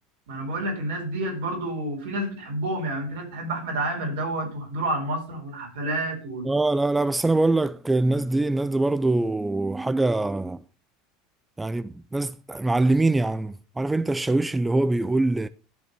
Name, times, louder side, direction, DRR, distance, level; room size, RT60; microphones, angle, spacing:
voice 1, 0.3-6.5, right 1 dB, 75° right, 4.5 m, -29 dB
voice 2, 6.5-10.6 11.6-15.5, right 2 dB, 10° right, 0.5 m, -23 dB
12.5 x 4.6 x 6.6 m
hypercardioid pair, 85°, 0 cm